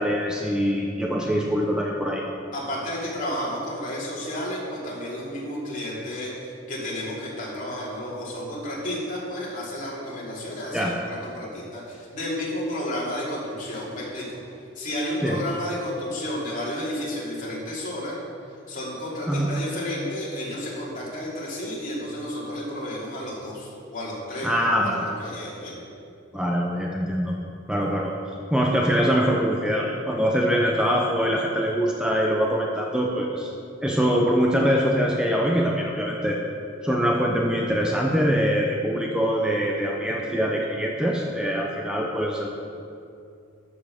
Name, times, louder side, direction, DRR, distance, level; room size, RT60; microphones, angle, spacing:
voice 1, 0.0-2.2 10.7-11.0 15.2-15.4 19.3-19.5 24.4-25.1 26.3-27.4 27.7-28.1 28.5-33.5 33.8-36.4 36.8-42.5, equal, 5° right, -1 dB, 0.7 m, -23 dB
voice 2, 2.5-6.3 6.7-14.4 14.7-18.1 18.7-25.7, left 1 dB, 45° left, -5 dB, 3.1 m, -32 dB
13.0 x 5.8 x 6.8 m, 2.5 s
head